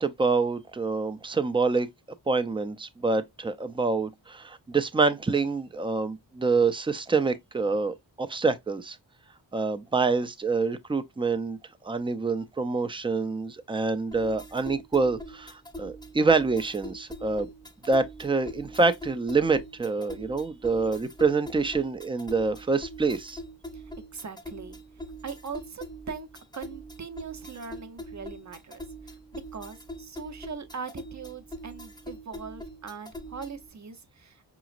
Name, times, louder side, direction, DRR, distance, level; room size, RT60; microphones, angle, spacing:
voice 1, 0.0-1.9 2.3-9.0 9.5-11.6 11.8-17.5 17.8-23.4, right 4 dB, 10° right, 0.4 m, -26 dB
sound 1, 14.1-33.7, equal, 10° left, 0.8 m, -43 dB
voice 2, 23.7-24.8 25.2-26.3 26.5-34.4, right 5 dB, 40° right, 0.7 m, -41 dB
4.9 x 3.0 x 2.4 m
wide cardioid pair, 70°, 44 cm